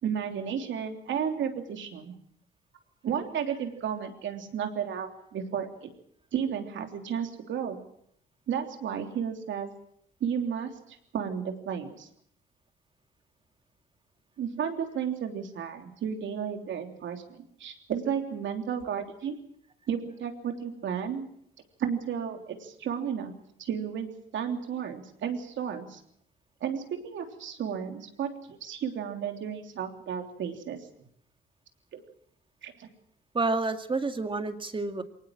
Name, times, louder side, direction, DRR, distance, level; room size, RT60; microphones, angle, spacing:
voice 1, 0.0-2.1 3.0-5.9 6.3-7.8 8.5-9.7 10.2-12.1 14.4-19.4 19.9-21.3 21.8-23.3 23.6-26.0 26.6-30.8 31.9-32.0 32.6-32.9, right 8 dB, 70° right, 5 dB, 3.3 m, -33 dB
voice 2, 33.3-35.0, right 3 dB, 25° right, 7 dB, 2.2 m, -29 dB
23.0 x 19.0 x 7.6 m, 0.70 s
cardioid pair, 90°, 20 cm